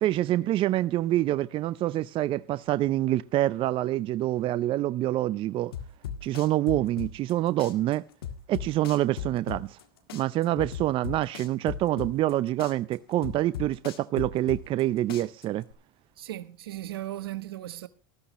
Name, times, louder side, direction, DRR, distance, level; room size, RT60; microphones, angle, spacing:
voice 1, 0.0-5.7 6.2-8.0 8.5-9.8 10.1-15.6, right 14 dB, 45° right, 0.6 m, -26 dB
sound 1, 5.7-7.3 7.6-9.8 10.1-12.3 12.6-14.8 15.1-15.7, left 8 dB, 85° left, 1.9 m, -37 dB
voice 2, 16.2-17.9, right 14 dB, 85° right, 1.1 m, -37 dB
19.0 x 13.5 x 3.1 m
hypercardioid pair, 95°, 12 cm